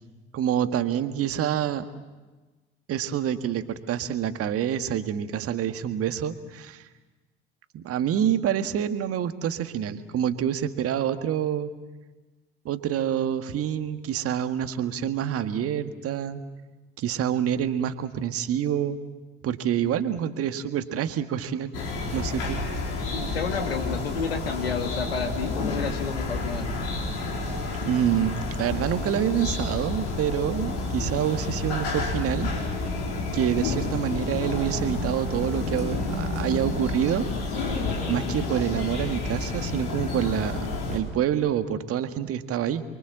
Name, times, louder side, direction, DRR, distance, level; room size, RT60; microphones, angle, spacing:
voice 1, 0.3-1.9 2.9-6.9 7.7-11.7 12.7-16.4 17.0-19.0 19.4-21.7 22.1-22.6 27.8-32.5 33.3-37.3 38.1-42.8, right 9 dB, 50° right, 9 dB, 1.7 m, -27 dB
sound 1, 21.7-41.0, left 3 dB, 70° left, 4.7 m, -30 dB
voice 2, 23.1-26.8, left 5 dB, 85° left, 5 dB, 2.1 m, -31 dB
29.0 x 23.5 x 7.5 m, 1.2 s
figure-of-eight pair, 55°, 29 cm